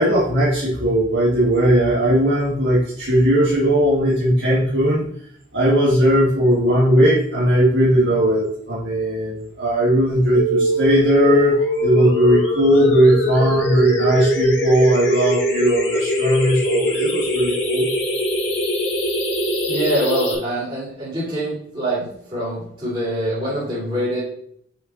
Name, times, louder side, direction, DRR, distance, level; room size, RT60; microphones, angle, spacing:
voice 1, 0.0-5.0 5.5-11.5 11.8-17.8, right 1 dB, 80° right, -7 dB, 1.6 m, -18 dB
sound 1, 10.3-20.3, equal, 85° left, 1.8 m, -22 dB
voice 2, 19.6-24.2, right 1 dB, 30° right, -10 dB, 2.8 m, -24 dB
5.7 x 5.3 x 3.8 m, 0.67 s
head